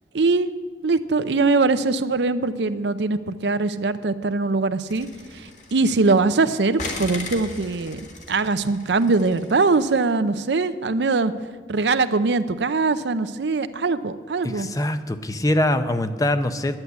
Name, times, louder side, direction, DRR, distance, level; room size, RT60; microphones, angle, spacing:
voice 1, 0.1-0.5 0.8-5.1 5.3-8.0 8.3-11.3 11.7-14.7, right 3 dB, 75° right, 12 dB, 0.6 m, -22 dB
sound 1, 4.9-6.4 6.8-10.0, left 3 dB, 45° left, 1.8 m, -38 dB
voice 2, 14.5-16.8, left 1 dB, 20° left, 9 dB, 0.6 m, -23 dB
10.5 x 9.6 x 8.0 m, 1.5 s
head